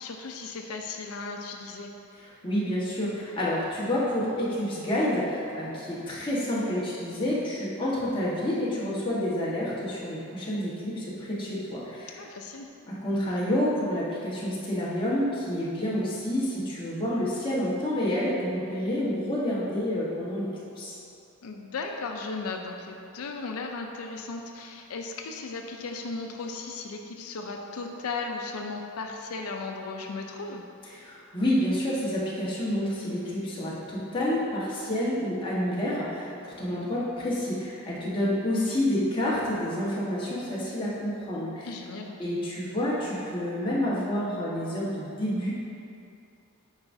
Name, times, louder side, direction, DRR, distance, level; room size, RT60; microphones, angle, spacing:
voice 1, 0.0-1.9 12.2-12.7 21.4-30.6 41.6-42.1, left 3 dB, 90° left, 2 dB, 0.5 m, -36 dB
voice 2, 2.2-12.2 13.0-20.5 20.8-21.0 30.9-41.7 42.2-45.5, left 1 dB, 25° left, -8 dB, 1.3 m, -29 dB
9.7 x 4.8 x 2.7 m, 2.7 s
head